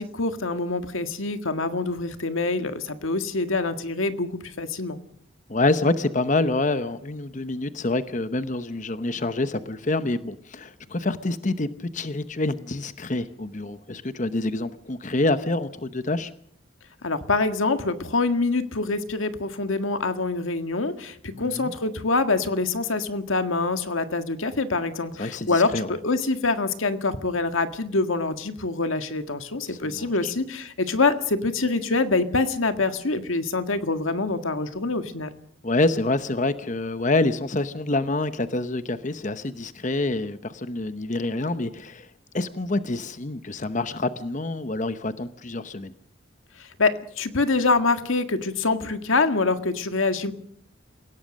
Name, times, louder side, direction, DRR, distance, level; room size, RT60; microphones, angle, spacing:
voice 1, 0.0-5.0 17.0-35.3 46.6-50.3, left 3 dB, 90° left, 9 dB, 1.8 m, -25 dB
voice 2, 5.5-16.3 21.3-21.7 25.2-25.9 29.7-30.1 35.6-42.1 42.3-45.9, left 2 dB, 40° left, 11 dB, 0.9 m, -27 dB
28.5 x 17.0 x 6.4 m, 0.64 s
head